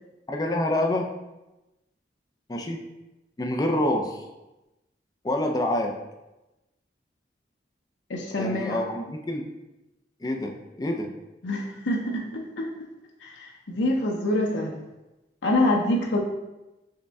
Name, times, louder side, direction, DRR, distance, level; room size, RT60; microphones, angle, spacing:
voice 1, 0.3-1.1 2.5-2.8 3.4-4.2 5.2-5.9 8.3-9.4 10.2-10.5 10.8-11.1, left 1 dB, 20° left, 2 dB, 0.4 m, -26 dB
voice 2, 8.1-8.9 11.4-12.7 13.2-14.8 15.4-16.2, left 1 dB, 85° left, 0 dB, 0.7 m, -26 dB
6.4 x 2.2 x 3.5 m, 0.99 s
head